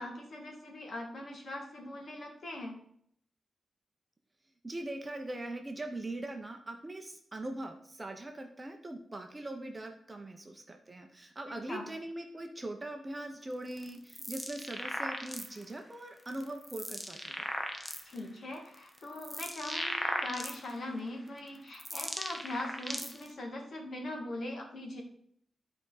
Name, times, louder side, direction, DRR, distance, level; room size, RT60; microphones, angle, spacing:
voice 1, 0.0-2.8 11.5-11.8 18.0-25.0, left 1 dB, 50° left, 1 dB, 2.0 m, -41 dB
voice 2, 4.6-17.5, right 1 dB, 20° right, 4 dB, 0.8 m, -41 dB
sound 1, 13.7-15.7 16.3-18.2 18.7-20.9 21.5-23.3, left 1 dB, 10° left, 0.9 m, -37 dB
11.5 x 4.9 x 4.0 m, 0.66 s
wide cardioid pair, 165°, 0 cm